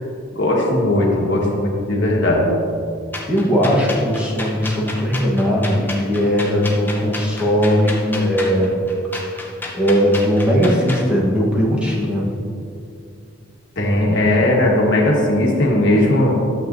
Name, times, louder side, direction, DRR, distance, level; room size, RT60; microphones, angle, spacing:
voice 1, 0.3-2.6 13.8-16.3, left 1 dB, 60° left, -2 dB, 1.5 m, -17 dB
sound 1, 3.1-11.1, left 2 dB, 10° left, 0.8 m, -31 dB
voice 2, 3.3-8.8 9.2-9.5 9.7-12.3, equal, 5° right, -5 dB, 1.2 m, -18 dB
12.5 x 7.7 x 2.7 m, 2.5 s
head